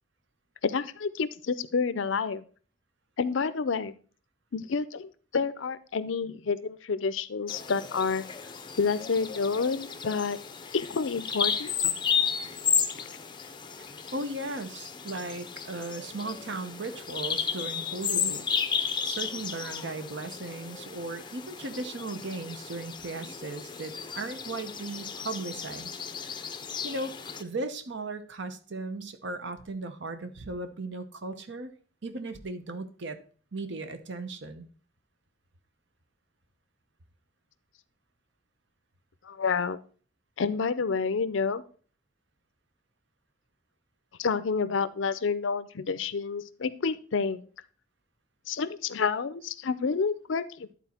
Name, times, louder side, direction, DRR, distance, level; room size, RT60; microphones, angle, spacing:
voice 1, 0.6-2.4 3.2-3.9 4.5-8.2 8.8-10.4 10.7-11.9 13.0-13.1 39.2-39.8 40.4-41.6 44.2-47.4 48.5-50.7, left 5 dB, 70° left, 15 dB, 0.5 m, -29 dB
Bird vocalization bird call bird song, 7.5-27.4, left 7 dB, 25° left, 0.5 m, -33 dB
voice 2, 13.8-18.4 19.0-26.5 26.8-27.1 27.4-31.7 32.0-33.2 33.5-34.7, right 2 dB, 60° right, 10 dB, 0.9 m, -37 dB
11.0 x 4.2 x 4.3 m, 0.41 s
head